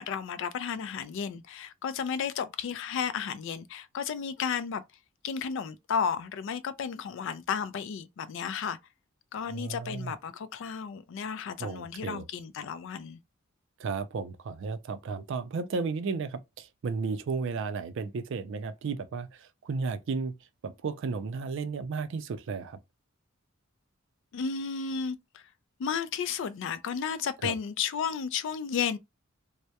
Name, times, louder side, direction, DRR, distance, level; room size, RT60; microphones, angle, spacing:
voice 1, 0.0-4.8 5.2-8.8 9.3-13.2 24.3-25.4 25.8-29.0, left 7 dB, 60° left, 0.3 m, -33 dB
voice 2, 9.4-10.1 11.6-12.3 13.8-20.4 20.6-22.8 27.4-27.5, right 4 dB, 60° right, 0.4 m, -34 dB
2.2 x 2.0 x 2.7 m
head